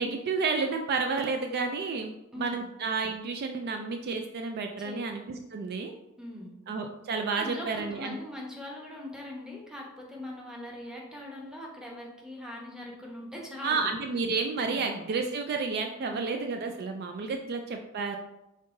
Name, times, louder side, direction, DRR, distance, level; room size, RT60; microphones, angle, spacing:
voice 1, 0.0-5.9 6.7-8.2 13.6-18.2, right 4 dB, 45° right, 4 dB, 0.3 m, -31 dB
voice 2, 2.3-2.7 4.8-5.0 6.2-6.5 7.3-13.9 14.6-14.8 16.0-16.2 17.2-17.4, left 1 dB, 5° right, -2 dB, 0.8 m, -41 dB
5.3 x 3.7 x 2.6 m, 0.93 s
head